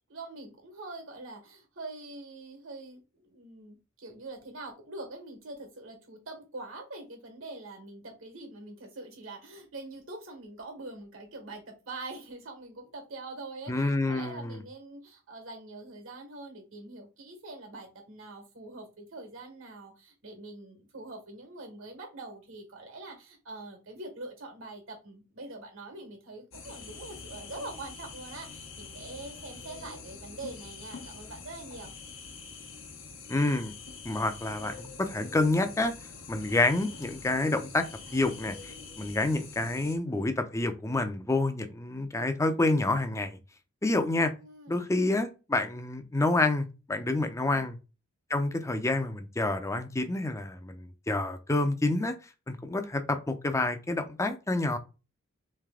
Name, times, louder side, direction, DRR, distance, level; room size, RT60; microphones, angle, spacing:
voice 1, 0.1-31.9 44.4-44.9 47.4-47.6, right 2 dB, 75° right, 3 dB, 1.5 m, -44 dB
voice 2, 13.7-14.6 33.3-33.7 34.0-35.9 36.3-37.9 38.1-43.4 43.8-44.3 44.7-47.7 48.3-52.1 52.5-54.8, left 2 dB, 15° left, 8 dB, 0.5 m, -28 dB
sound 1, 26.5-40.0, left 4 dB, 80° left, 0.9 m, -45 dB
3.3 x 3.3 x 3.6 m, 0.31 s
head